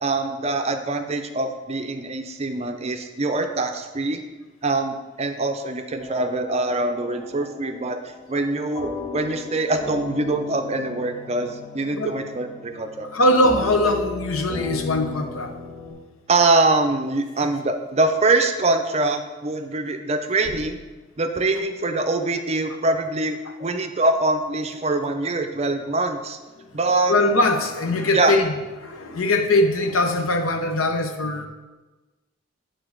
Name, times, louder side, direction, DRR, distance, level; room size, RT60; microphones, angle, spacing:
voice 1, 0.0-4.2 4.6-8.0 8.3-13.1 16.3-20.8 21.2-26.4 26.7-27.2 28.1-28.3, right 2 dB, 30° right, 6 dB, 0.5 m, -23 dB
sound 1, 6.0-15.9, left 4 dB, 15° left, 1.7 m, -36 dB
voice 2, 13.1-15.5 26.6-26.7 27.1-28.5 28.8-31.5, left 1 dB, 85° left, 5 dB, 0.8 m, -21 dB
7.0 x 3.9 x 6.5 m, 1.2 s
head